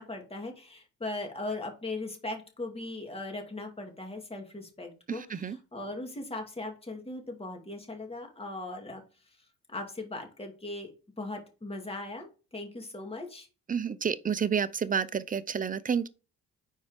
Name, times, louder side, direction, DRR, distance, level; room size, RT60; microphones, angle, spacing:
voice 1, 0.0-9.0 9.7-10.9 11.2-12.3 12.5-13.5, left 2 dB, 20° left, 2.4 m, -39 dB
voice 2, 13.7-16.1, right 7 dB, 25° right, 0.6 m, -29 dB
5.4 x 4.6 x 5.0 m
cardioid pair, 90°, 30 cm